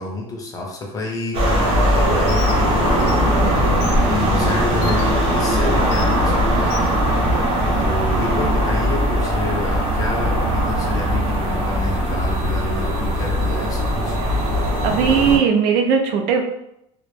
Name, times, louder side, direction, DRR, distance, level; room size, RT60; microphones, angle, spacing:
voice 1, 0.0-3.7 4.1-7.4 7.8-14.2, left 2 dB, 25° left, 0 dB, 0.5 m, -29 dB
sound 1, 1.3-15.4, equal, 40° right, 0.7 m, -19 dB
Bird, 2.3-2.6 3.0-3.1 3.8-4.0 4.8-5.0 5.9-6.1 6.7-6.9, left 8 dB, 80° left, 0.4 m, -34 dB
voice 2, 14.8-16.4, right 6 dB, 80° right, 4 dB, 0.4 m, -18 dB
2.1 x 2.1 x 3.1 m, 0.80 s
cardioid pair, 155°, 14 cm